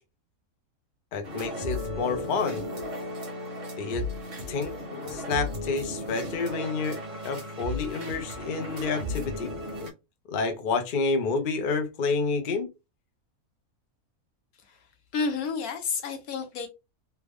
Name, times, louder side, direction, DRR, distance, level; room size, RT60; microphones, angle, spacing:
voice 1, 1.1-2.6 3.8-4.1 4.5-4.7 5.1-7.0 7.2-9.5 10.3-12.7, left 4 dB, 50° left, 0.6 m, -29 dB
sound 1, 1.2-9.9, left 1 dB, 60° right, 1.5 m, -35 dB
voice 2, 15.1-16.7, left 5 dB, 75° left, 1.3 m, -30 dB
3.4 x 2.2 x 3.4 m
omnidirectional pair, 1.5 m